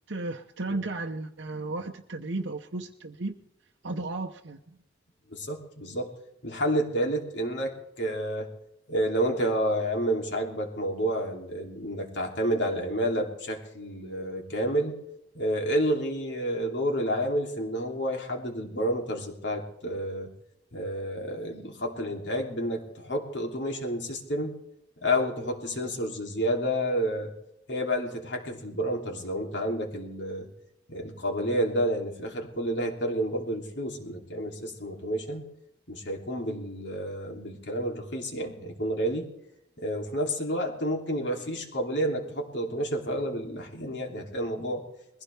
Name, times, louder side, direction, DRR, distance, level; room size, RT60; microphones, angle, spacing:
voice 1, 0.1-3.4 3.8-4.8, right 2 dB, 75° right, 2 dB, 0.9 m, -34 dB
voice 2, 5.3-6.1 6.4-8.5 8.9-14.9 15.3-20.3 20.7-24.5 25.0-27.3 27.7-30.5 30.9-35.4 35.9-39.3 39.8-44.8, equal, 65° left, 1 dB, 2.9 m, -30 dB
21.5 x 15.5 x 3.4 m, 0.81 s
head